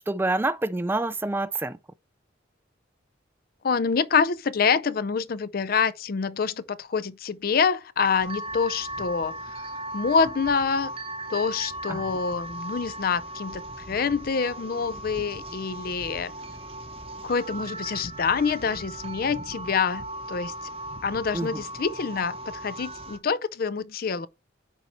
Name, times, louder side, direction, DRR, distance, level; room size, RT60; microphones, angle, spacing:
voice 1, 0.1-1.8 11.9-12.0 21.3-21.6, right 2 dB, 10° right, 0.3 m, -27 dB
voice 2, 3.6-9.4 9.9-10.9 11.3-16.3 17.2-20.5 21.0-24.3, left 5 dB, 50° left, 0.5 m, -26 dB
sound 1, 8.0-23.2, right 1 dB, 30° right, 0.8 m, -37 dB
9.9 x 4.1 x 4.5 m
head